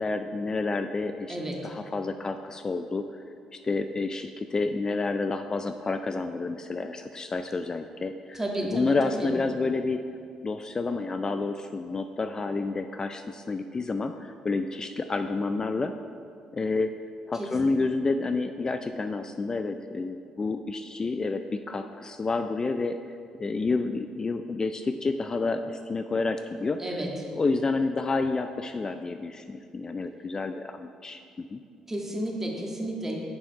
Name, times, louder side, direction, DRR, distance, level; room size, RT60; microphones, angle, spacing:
voice 1, 0.0-1.4 1.6-3.2 3.5-10.0 10.4-15.9 16.5-16.9 17.3-23.0 23.4-26.8 27.3-31.6, left 3 dB, 35° left, 8 dB, 0.4 m, -29 dB
voice 2, 8.3-9.3 17.4-17.5 26.8-27.1 31.9-33.2, right 1 dB, 20° right, -1 dB, 1.7 m, -32 dB
7.0 x 5.7 x 5.3 m, 2.4 s
supercardioid pair, 60°, 2 cm